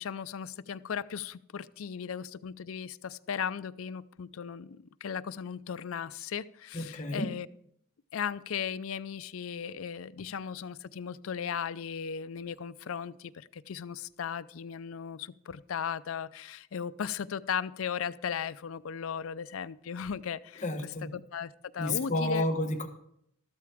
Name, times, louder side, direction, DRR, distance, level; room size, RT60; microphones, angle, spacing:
voice 1, 0.0-7.5 8.1-20.6 21.1-22.5, left 7 dB, 80° left, 14 dB, 0.5 m, -37 dB
voice 2, 6.7-7.3 20.6-21.1 21.8-22.9, left 2 dB, 35° left, 5 dB, 1.2 m, -30 dB
13.5 x 13.0 x 3.5 m, 0.72 s
head